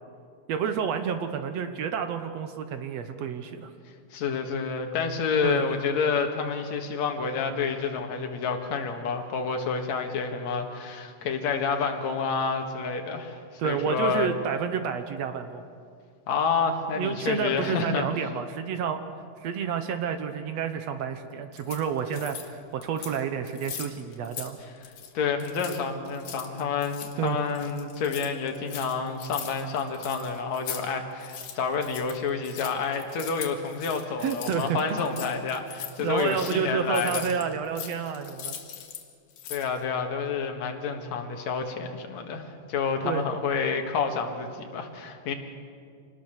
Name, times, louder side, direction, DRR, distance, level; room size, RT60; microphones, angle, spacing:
voice 1, 0.5-3.7 5.4-5.6 13.6-15.6 17.0-19.0 19.4-24.6 27.2-27.4 34.2-35.0 36.0-38.5 43.0-43.2, right 7 dB, 65° right, 8 dB, 1.9 m, -29 dB
voice 2, 4.1-14.3 16.3-18.1 25.1-37.2 39.5-45.3, left 5 dB, 60° left, 4 dB, 2.8 m, -29 dB
sound 1, 21.5-22.5 22.8-23.2 23.5-24.5 24.8-25.1 25.4-30.9 31.1-39.0 39.3-39.8, left 8 dB, 80° left, 3.2 m, -40 dB
25.5 x 19.5 x 6.6 m, 2.2 s
omnidirectional pair, 3.7 m